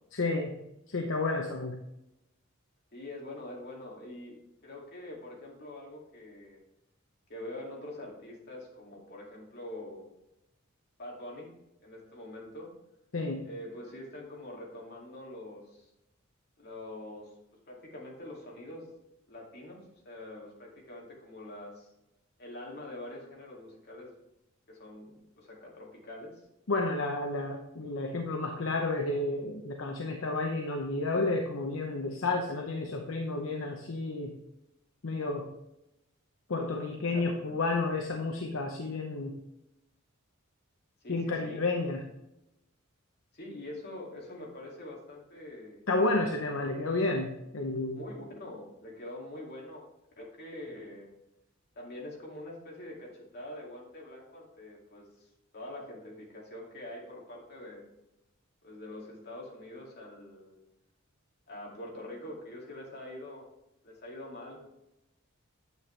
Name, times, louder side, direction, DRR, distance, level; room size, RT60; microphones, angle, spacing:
voice 1, 0.1-0.5 0.9-1.8 13.1-13.5 26.7-34.4 35.0-35.5 36.5-39.4 41.1-42.1 45.9-48.0, left 2 dB, 70° left, 3 dB, 0.7 m, -31 dB
voice 2, 2.9-6.6 7.3-10.1 11.0-11.5 11.8-12.7 13.4-15.9 16.6-17.3 17.7-18.9 19.3-21.9 22.4-24.1 24.7-26.3 37.1-37.6 41.0-41.7 43.3-45.8 47.9-49.8 50.2-51.1 51.8-55.3 55.5-57.8 58.6-60.6 61.5-63.5 63.8-64.6, left 1 dB, 50° left, -2 dB, 2.3 m, -44 dB
9.2 x 7.7 x 3.3 m, 0.90 s
head